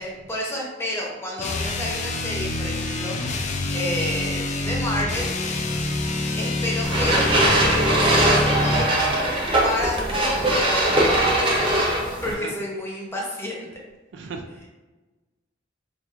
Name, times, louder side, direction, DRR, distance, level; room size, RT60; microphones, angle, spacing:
voice 1, 0.0-5.3 6.4-7.2 8.0-11.6 12.1-13.7, left 1 dB, 15° left, -3 dB, 0.7 m, -30 dB
sound 1, 1.4-8.9, left 2 dB, 40° left, 0.3 m, -26 dB
sound 2, 6.8-12.3, right 1 dB, 30° right, 0.6 m, -21 dB
voice 2, 11.9-12.5 14.1-14.7, right 4 dB, 75° right, 5 dB, 0.4 m, -38 dB
4.5 x 2.4 x 2.4 m, 1.2 s
head